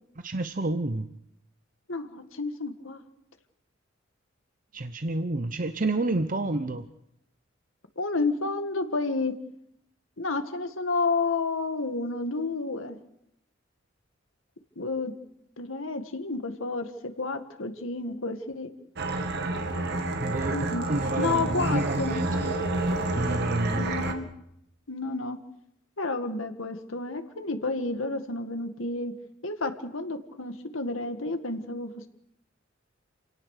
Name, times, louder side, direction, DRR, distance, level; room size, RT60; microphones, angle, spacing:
voice 1, 0.2-1.1 4.7-6.9 20.2-22.3 23.1-23.9, right 2 dB, 45° right, 9 dB, 0.9 m, -29 dB
voice 2, 1.9-3.0 8.0-9.4 10.2-13.0 14.8-15.1 15.6-18.7 20.5-20.9 21.2-22.5 23.7-24.3 24.9-25.4 26.0-29.1 29.4-32.1, left 3 dB, 90° left, 8 dB, 2.1 m, -30 dB
sound 1, 19.0-24.1, right 2 dB, 60° right, 2.5 m, -29 dB
28.0 x 17.5 x 6.7 m, 0.77 s
head